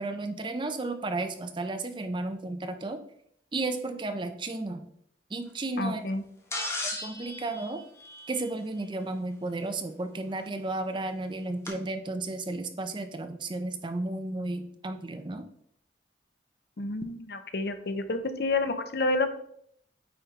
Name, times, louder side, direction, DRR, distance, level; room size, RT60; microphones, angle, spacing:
voice 1, 0.0-3.0 3.5-4.8 5.3-6.0 6.8-7.8 8.3-15.4, right 2 dB, 25° right, 8 dB, 0.6 m, -33 dB
voice 2, 5.8-6.2 16.8-19.3, left 2 dB, 60° left, 9 dB, 0.7 m, -29 dB
sound 1, 6.5-8.8 10.4-10.5 11.7-11.8, left 1 dB, 15° left, 1.2 m, -36 dB
8.7 x 4.0 x 4.0 m, 0.68 s
head